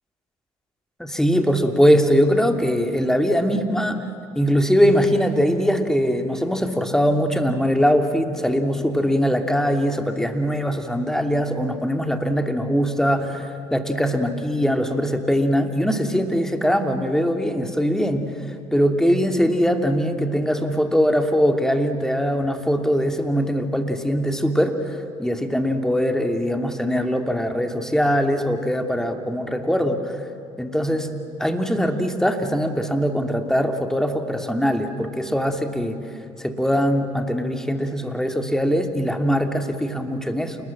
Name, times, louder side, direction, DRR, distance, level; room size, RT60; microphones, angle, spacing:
voice 1, 1.0-4.0 4.3-18.3 18.7-30.1 30.6-31.1 31.4-36.1 36.4-40.6, equal, 5° left, 5 dB, 2.7 m, -21 dB
29.0 x 20.0 x 7.7 m, 2.6 s
hypercardioid pair, 55°, 15 cm